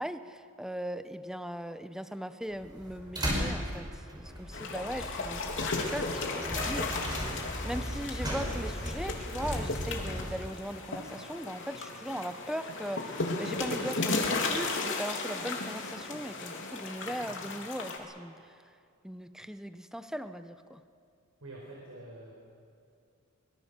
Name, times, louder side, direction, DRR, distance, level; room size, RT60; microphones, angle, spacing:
voice 1, 0.0-7.3 7.6-18.6 19.0-20.8, equal, 5° right, 10 dB, 0.9 m, -39 dB
sound 1, 2.5-10.2, equal, 20° right, 5.5 m, -36 dB
sound 2, 4.5-18.0, left 3 dB, 60° left, 3.1 m, -35 dB
voice 2, 21.4-22.3, right 2 dB, 80° right, -3 dB, 4.7 m, -46 dB
24.5 x 22.5 x 6.8 m, 2.4 s
head